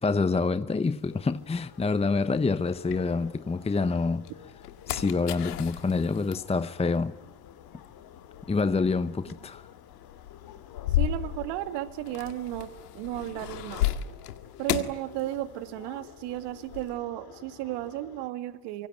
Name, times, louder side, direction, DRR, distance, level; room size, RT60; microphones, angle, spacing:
voice 1, 0.0-4.3 4.9-7.2 8.5-9.7, left 4 dB, 15° left, 0.9 m, -27 dB
sound 1, 0.9-3.6 4.1-15.9 16.1-16.9, left 13 dB, 85° left, 1.9 m, -35 dB
sound 2, 1.1-18.3, left 9 dB, 50° left, 3.3 m, -50 dB
voice 2, 10.9-13.9 14.6-18.9, right 14 dB, 65° right, 2.2 m, -34 dB
25.5 x 23.5 x 9.1 m
hypercardioid pair, 75°, 45 cm